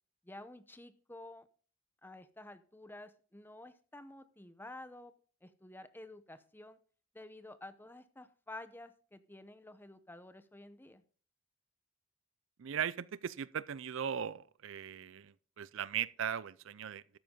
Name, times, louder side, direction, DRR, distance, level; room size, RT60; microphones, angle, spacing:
voice 1, 0.2-1.5 2.0-5.1 5.4-6.8 7.1-11.0, left 2 dB, 10° left, 0.7 m, -51 dB
voice 2, 12.6-17.2, right 8 dB, 65° right, 0.4 m, -38 dB
12.5 x 9.4 x 3.7 m
head